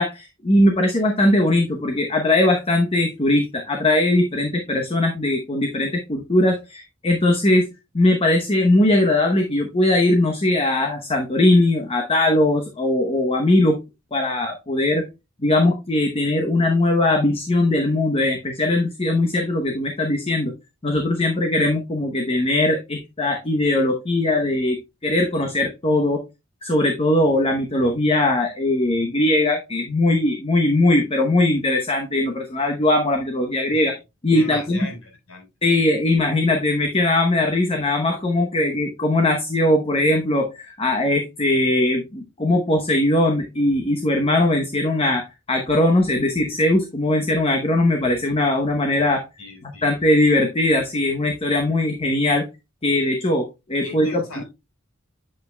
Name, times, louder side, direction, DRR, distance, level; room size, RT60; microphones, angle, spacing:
voice 1, 0.0-7.6 7.9-13.8 14.1-15.0 15.4-20.5 20.8-26.2 26.6-34.0 34.2-34.8 35.6-49.2 49.6-52.5 52.8-54.4, left 1 dB, 30° left, 0.9 m, -20 dB
voice 2, 34.3-35.5 49.4-49.8 53.8-54.4, left 2 dB, 90° left, 4.1 m, -38 dB
8.4 x 7.4 x 2.2 m
head